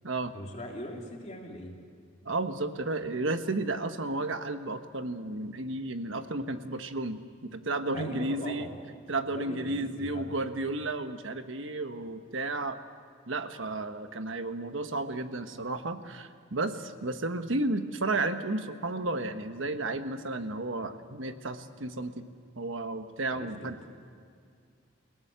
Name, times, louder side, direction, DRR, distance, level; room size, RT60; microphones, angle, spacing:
voice 1, 0.3-1.7 7.9-8.7 9.3-10.4 23.3-23.8, left 1 dB, 35° left, 0 dB, 3.1 m, -40 dB
voice 2, 2.2-8.7 9.1-12.8 13.3-22.3 22.6-23.8, right 2 dB, 75° right, 8 dB, 1.3 m, -33 dB
29.5 x 17.5 x 6.8 m, 2.3 s
head